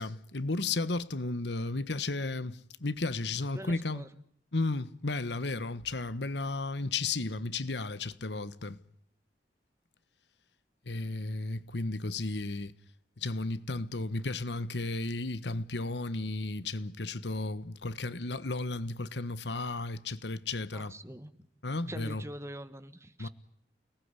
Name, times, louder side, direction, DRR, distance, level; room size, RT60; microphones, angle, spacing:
voice 1, 0.0-4.0 4.5-8.8 10.9-12.7 13.2-20.9 21.6-22.2 23.2-23.3, left 3 dB, 75° left, 1.3 m, -34 dB
voice 2, 3.5-4.1 20.7-21.5 21.9-23.3, right 1 dB, 15° right, 1.5 m, -44 dB
29.5 x 19.5 x 9.8 m
head